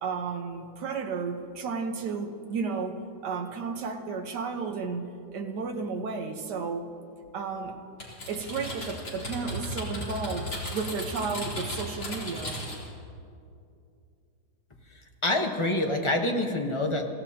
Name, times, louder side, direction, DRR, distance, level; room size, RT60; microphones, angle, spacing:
voice 1, 0.0-6.9 7.3-7.8 8.3-12.6, right 4 dB, 65° right, 4 dB, 1.7 m, -33 dB
Typing, 8.0-12.9, equal, 60° left, 4.1 m, -36 dB
voice 2, 15.2-17.1, left 1 dB, 20° left, 2 dB, 0.9 m, -26 dB
25.0 x 16.0 x 2.9 m, 2.4 s
omnidirectional pair, 2.0 m